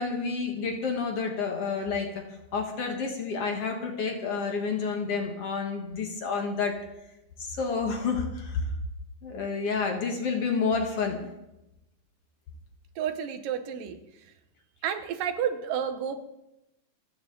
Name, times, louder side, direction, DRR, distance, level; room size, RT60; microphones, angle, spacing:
voice 1, 0.0-2.2 2.5-6.8 7.4-8.6 9.2-11.3, left 5 dB, 55° left, 3 dB, 2.2 m, -29 dB
voice 2, 13.0-14.0 14.8-16.2, right 8 dB, 85° right, 9 dB, 2.8 m, -30 dB
28.0 x 9.4 x 3.9 m, 0.92 s
omnidirectional pair, 3.8 m